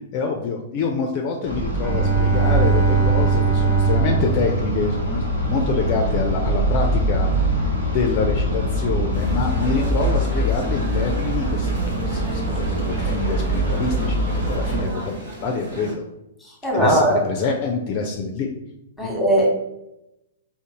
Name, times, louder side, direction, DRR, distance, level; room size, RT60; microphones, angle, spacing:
voice 1, 0.1-11.7 12.1-14.2 14.5-16.0 16.7-18.5 19.0-19.1, left 4 dB, 40° left, 2 dB, 0.4 m, -26 dB
sound 1, 1.4-14.8, right 1 dB, 85° right, 0.9 m, -23 dB
Bowed string instrument, 1.7-5.5, right 5 dB, 25° right, 0.6 m, -21 dB
sound 2, 9.1-15.9, right 2 dB, 55° right, 1.1 m, -36 dB
voice 2, 16.6-17.2 19.0-19.5, right 1 dB, ahead, -2 dB, 1.1 m, -18 dB
3.7 x 2.0 x 2.9 m, 0.86 s
figure-of-eight pair, 110°, 0 cm